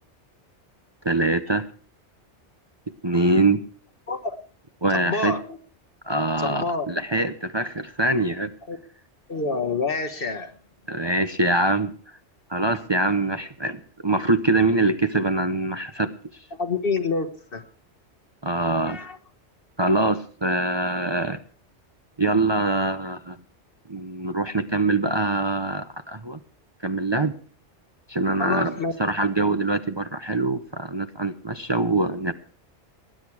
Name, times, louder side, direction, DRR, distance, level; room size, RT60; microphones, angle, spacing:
voice 1, 1.0-1.7 3.0-3.6 4.8-5.3 6.0-8.5 10.9-11.9 12.5-16.1 18.4-19.0 19.8-21.4 22.2-23.4 23.9-26.4 26.8-27.3 28.1-32.3, right 2 dB, 25° right, 0.7 m, -24 dB
voice 2, 4.9-5.6 6.4-6.9 8.7-8.8 9.3-10.5 16.6-17.6 18.9-19.2 28.4-28.9, left 4 dB, 50° left, 1.5 m, -27 dB
19.5 x 10.5 x 4.7 m
omnidirectional pair, 1.2 m